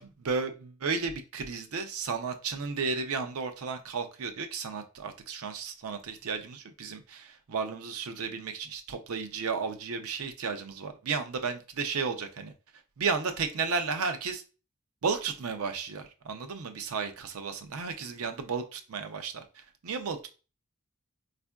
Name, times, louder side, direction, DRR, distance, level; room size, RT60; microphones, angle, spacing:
voice 1, 0.0-12.5 13.0-14.4 15.0-20.3, right 5 dB, 75° right, 7 dB, 0.5 m, -33 dB
4.3 x 2.5 x 2.2 m, 0.33 s
head